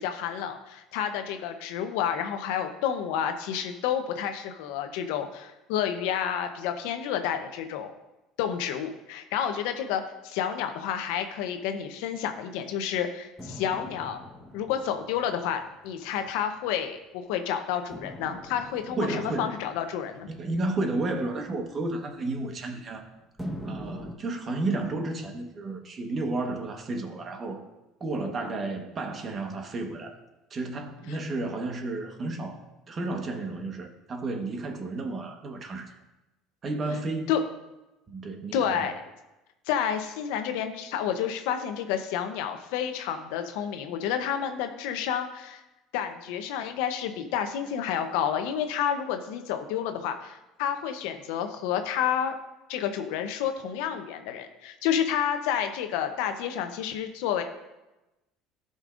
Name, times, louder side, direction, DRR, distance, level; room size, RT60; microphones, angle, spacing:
voice 1, 0.0-7.9 8.4-14.2 14.5-20.3 37.3-37.4 38.5-39.0 39.7-45.6 45.9-52.3 52.7-57.4, left 9 dB, 80° left, 7 dB, 0.8 m, -30 dB
Metal Sheet Bang, 13.4-17.1 17.9-22.9 23.4-24.2, equal, 5° right, 1.2 m, -44 dB
voice 2, 18.9-19.6 20.3-23.1 23.6-27.6 28.0-30.2 30.5-35.9 36.6-37.4 38.1-38.8, right 2 dB, 35° right, 4 dB, 1.2 m, -32 dB
13.0 x 5.3 x 2.5 m, 1.0 s
supercardioid pair, 100°, 0 cm